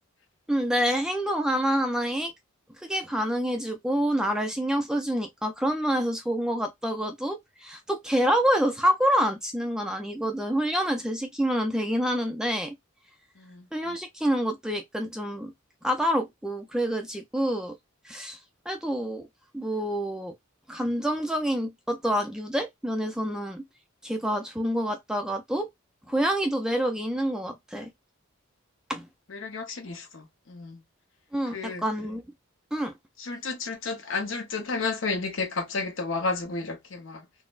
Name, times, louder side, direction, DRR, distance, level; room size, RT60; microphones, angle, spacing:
voice 1, 0.5-2.3 2.8-12.7 13.7-15.5 15.8-17.7 18.0-18.4 18.7-19.3 19.5-20.3 20.7-23.6 24.0-25.7 26.1-27.9 28.9-29.1 31.3-32.2 32.7-32.9, equal, 5° right, 0.4 m, -27 dB
voice 2, 13.4-13.7 29.3-30.8 31.5-31.8 33.2-37.3, left 4 dB, 65° left, 0.8 m, -32 dB
3.9 x 2.0 x 2.4 m
head